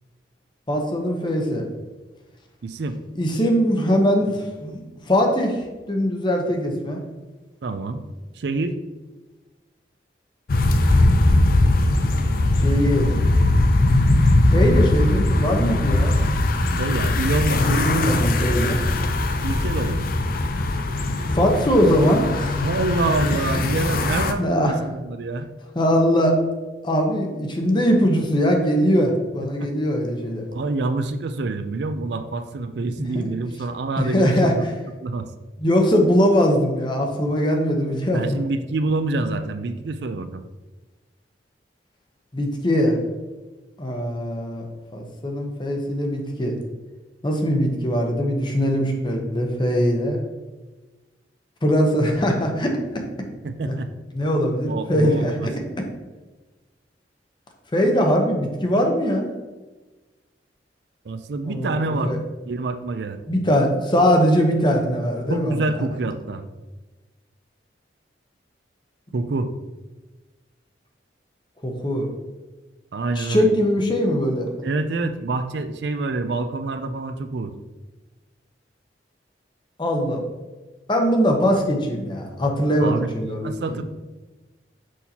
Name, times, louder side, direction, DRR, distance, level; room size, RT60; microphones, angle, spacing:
voice 1, 0.7-1.7 3.2-4.8 5.1-5.6 5.9-7.0 12.6-13.1 14.5-16.2 17.6-18.8 21.3-22.6 24.4-24.7 25.7-26.4 26.8-30.5 33.0-33.3 34.0-34.5 35.6-38.4 42.3-43.0 43.8-44.7 44.9-46.6 47.2-50.2 51.6-53.0 53.6-53.7 54.1-55.3 57.7-59.3 61.4-62.2 63.3-65.7 71.6-72.1 73.2-74.5 79.8-80.2 80.9-83.8, equal, 25° left, 2 dB, 0.9 m, -21 dB
voice 2, 2.6-3.0 7.6-8.0 8.3-8.7 16.8-18.0 19.4-20.0 22.6-25.5 29.6-29.7 30.5-34.6 35.0-35.3 38.1-40.4 53.4-53.9 54.7-55.5 61.1-62.1 62.5-63.2 65.3-66.4 69.1-69.5 72.9-73.6 74.6-77.5 82.8-83.1 83.4-83.8, right 3 dB, 70° right, 10 dB, 0.4 m, -26 dB
sound 1, 10.5-24.3, left 2 dB, 55° left, 0.5 m, -20 dB
6.3 x 5.7 x 2.8 m, 1.2 s
head